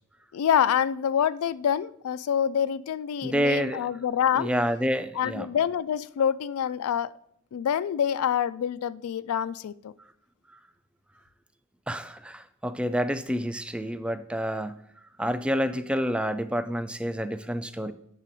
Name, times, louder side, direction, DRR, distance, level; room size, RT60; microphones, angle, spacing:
voice 1, 0.3-4.5 5.1-7.1 7.5-9.9, left 8 dB, 80° left, 15 dB, 0.3 m, -26 dB
voice 2, 3.2-3.9 4.4-5.5 11.9-14.8 15.2-17.9, equal, 5° right, 12 dB, 0.3 m, -28 dB
8.8 x 6.2 x 4.1 m, 0.73 s
head